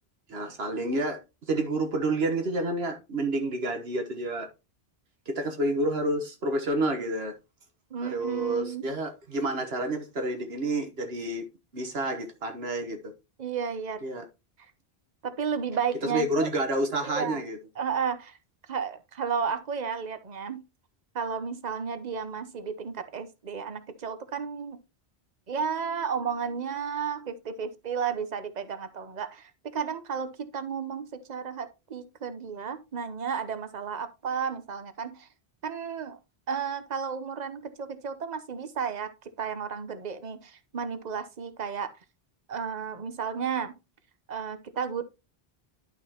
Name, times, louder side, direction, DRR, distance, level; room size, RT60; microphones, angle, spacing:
voice 1, 0.3-1.2 1.5-4.5 5.3-7.3 8.0-11.4 11.7-13.1 14.0-14.2 16.1-17.6, right 2 dB, 75° right, 1.5 m, -29 dB
voice 2, 7.9-8.9 13.4-14.0 15.2-16.5 17.0-17.4 17.8-18.4 18.7-20.6 21.1-24.8 25.5-35.3 35.6-36.2 36.5-41.9 42.5-43.7 44.3-45.0, right 6 dB, 45° right, 1.0 m, -33 dB
11.5 x 5.7 x 2.9 m
omnidirectional pair, 1.1 m